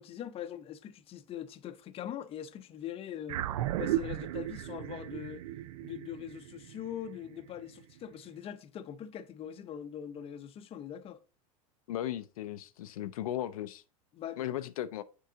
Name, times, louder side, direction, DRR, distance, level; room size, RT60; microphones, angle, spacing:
voice 1, 0.0-3.5 3.8-5.4 5.8-11.2 14.1-14.5, left 10 dB, 30° left, 0.6 m, -42 dB
sound 1, 3.3-7.9, right 13 dB, 80° right, 0.4 m, -36 dB
voice 2, 11.9-13.8 14.4-15.0, left 12 dB, 85° left, 0.5 m, -36 dB
6.7 x 4.6 x 3.8 m
hypercardioid pair, 105°, 18 cm